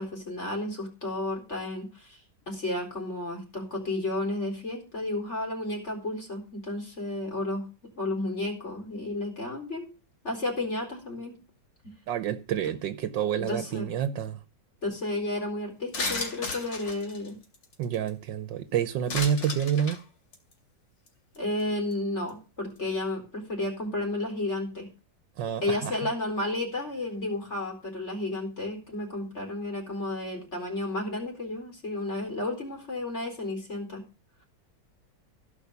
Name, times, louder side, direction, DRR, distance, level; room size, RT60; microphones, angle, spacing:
voice 1, 0.0-2.2 2.5-7.7 8.0-9.9 10.2-11.4 12.7-12.8 13.4-13.9 14.8-17.4 21.4-24.9 25.6-34.0, left 2 dB, 35° left, 4.5 m, -32 dB
voice 2, 12.1-14.4 17.8-20.0 25.4-25.9, right 9 dB, 80° right, 1.5 m, -28 dB
sound 1, 15.9-18.1 19.1-20.0 20.3-20.5 21.1-21.2 21.3-21.6 21.9-22.0, left 3 dB, 75° left, 3.4 m, -34 dB
16.5 x 5.6 x 6.9 m
omnidirectional pair, 1.9 m